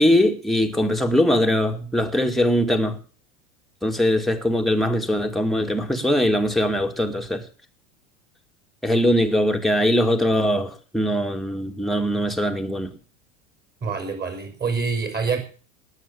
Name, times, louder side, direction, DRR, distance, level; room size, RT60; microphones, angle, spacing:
voice 1, 0.0-3.0 3.8-7.4 8.8-12.9, equal, ahead, 2.3 m, -21 dB
voice 2, 13.8-15.4, right 5 dB, 25° right, 5.8 m, -26 dB
19.0 x 8.1 x 7.2 m
hypercardioid pair, 90°, 40 cm